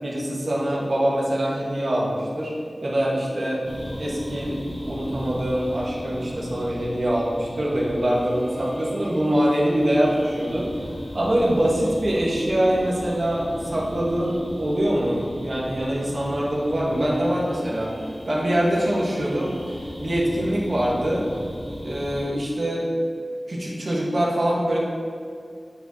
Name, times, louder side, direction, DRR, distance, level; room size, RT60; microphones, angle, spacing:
voice 1, 0.0-2.5 2.8-18.0 18.3-19.7 20.0-21.3 21.8-22.9 23.5-24.8, right 1 dB, 55° right, -5 dB, 1.4 m, -24 dB
sound 1, 3.6-22.3, equal, 30° left, 1.4 m, -37 dB
8.8 x 4.7 x 2.8 m, 2.3 s
wide cardioid pair, 85°, 0 cm